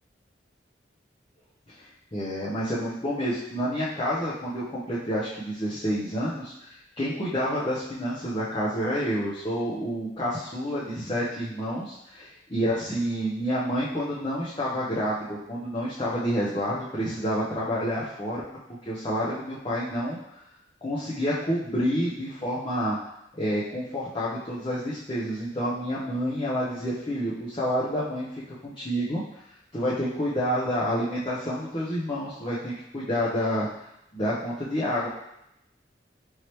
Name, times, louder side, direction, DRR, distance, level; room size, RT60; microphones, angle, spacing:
voice 1, 2.1-18.4 18.9-20.2 20.8-23.0 23.3-29.2 29.7-33.7 34.1-35.1, equal, 25° left, -9 dB, 0.7 m, -29 dB
4.5 x 3.1 x 3.0 m, 0.82 s
head